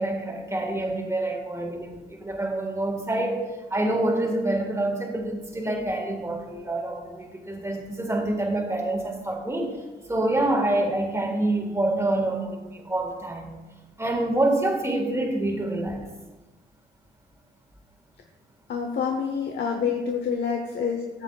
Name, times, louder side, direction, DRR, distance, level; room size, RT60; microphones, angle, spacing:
voice 1, 0.0-13.6 14.0-16.1, right 1 dB, 15° right, 1 dB, 1.7 m, -27 dB
voice 2, 18.7-21.2, left 6 dB, 60° left, 2 dB, 0.9 m, -27 dB
14.5 x 7.1 x 2.4 m, 1.2 s
cardioid pair, 90°, 20 cm